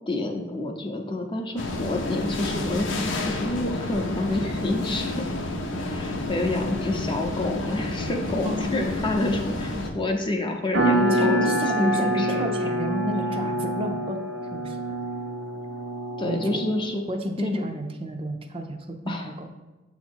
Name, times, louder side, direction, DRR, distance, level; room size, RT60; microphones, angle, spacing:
voice 1, 0.1-5.2 5.9-12.6 16.2-17.0 17.4-17.6 19.1-19.3, left 2 dB, 25° left, 3 dB, 0.6 m, -28 dB
sound 1, 1.6-9.9, left 2 dB, 75° left, 0.7 m, -30 dB
sound 2, 10.7-16.9, right 1 dB, 90° right, 0.9 m, -26 dB
voice 2, 11.1-14.3 14.5-15.0 16.2-16.6 17.1-19.5, equal, 30° right, 4 dB, 0.5 m, -31 dB
7.4 x 2.9 x 4.4 m, 1.1 s
head